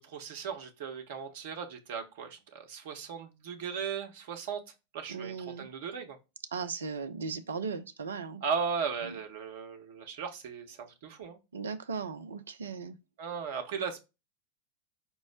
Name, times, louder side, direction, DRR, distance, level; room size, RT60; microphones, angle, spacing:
voice 1, 0.0-4.6 4.9-6.2 8.4-11.4 13.2-14.0, right 6 dB, 50° right, 0.9 m, -37 dB
voice 2, 5.1-5.7 6.5-8.4 9.1-9.2 11.5-13.0, right 5 dB, 70° right, 0.5 m, -37 dB
5.3 x 2.1 x 4.7 m
figure-of-eight pair, 90°, 0 cm